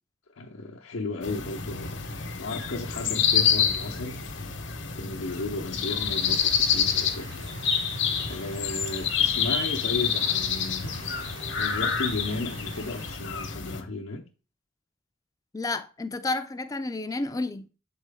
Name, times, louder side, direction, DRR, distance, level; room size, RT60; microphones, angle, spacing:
voice 1, 0.3-2.0 2.4-4.2 4.9-7.3 8.3-14.2, left 2 dB, 85° left, 0.7 m, -34 dB
sound 1, 1.2-13.8, left 7 dB, 60° left, 0.9 m, -28 dB
sound 2, 6.0-13.2, right 3 dB, 75° right, 1.8 m, -47 dB
voice 2, 15.5-17.7, left 2 dB, 15° left, 0.3 m, -31 dB
7.4 x 4.3 x 3.5 m
head